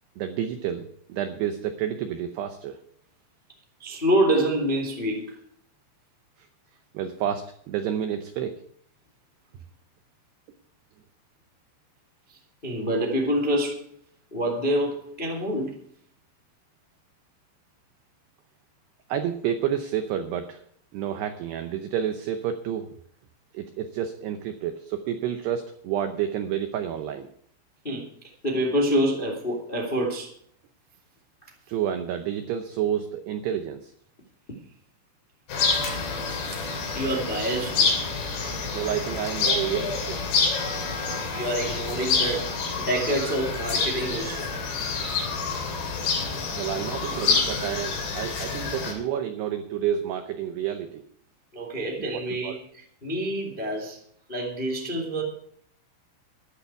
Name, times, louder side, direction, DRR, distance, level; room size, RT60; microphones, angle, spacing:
voice 1, 0.2-2.8 6.9-8.6 19.1-20.6 20.9-22.9 23.5-27.3 31.7-33.9 38.5-40.2 46.6-51.0 52.4-52.5, right 9 dB, 85° right, 7 dB, 2.3 m, -29 dB
voice 2, 3.8-5.4 12.3-13.9 14.3-15.7 27.8-28.1 28.4-30.3 35.9-36.0 36.9-38.0 40.9-42.5 42.8-44.5 51.5-54.0 54.3-55.2, right 1 dB, 35° left, 1 dB, 0.8 m, -27 dB
sound 1, 35.5-48.9, left 4 dB, 55° left, 4.8 m, -27 dB
14.0 x 12.0 x 4.7 m, 0.63 s
omnidirectional pair, 6.0 m